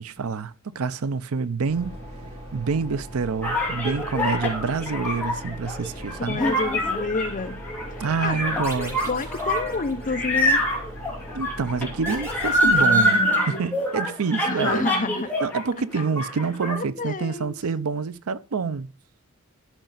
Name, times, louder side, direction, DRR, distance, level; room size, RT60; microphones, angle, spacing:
voice 1, 0.0-2.0 2.5-6.4 8.0-9.1 11.3-13.2 13.5-14.9 15.4-18.9, right 5 dB, 75° right, 0.6 m, -27 dB
sound 1, 1.7-12.8, equal, 30° right, 3.5 m, -39 dB
sound 2, 3.4-15.6 15.9-16.8, equal, 10° left, 2.7 m, -25 dB
voice 2, 6.2-7.6 8.2-8.6 9.0-10.6 12.6-13.6 14.5-15.3 16.8-17.5, left 3 dB, 35° left, 0.6 m, -29 dB
sound 3, 8.6-10.6 12.0-13.8, equal, 10° right, 2.7 m, -41 dB
13.5 x 5.2 x 3.9 m
head